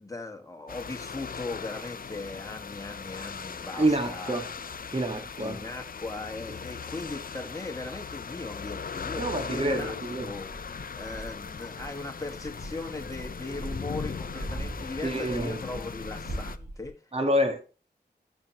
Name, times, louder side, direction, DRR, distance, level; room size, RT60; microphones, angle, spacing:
voice 1, 0.0-4.6 5.4-9.9 10.2-10.6 10.9-17.0, left 3 dB, 20° left, 1.8 m, -38 dB
sound 1, 0.7-16.6, left 6 dB, 55° left, 0.6 m, -39 dB
voice 2, 3.8-4.5 4.9-5.6 9.2-10.3 15.0-15.6 17.1-17.6, right 1 dB, 35° right, 1.9 m, -27 dB
Dog, 8.0-8.1 9.0-16.9, right 1 dB, 70° right, 3.1 m, -41 dB
13.0 x 5.8 x 3.0 m
wide cardioid pair, 95°, 18 cm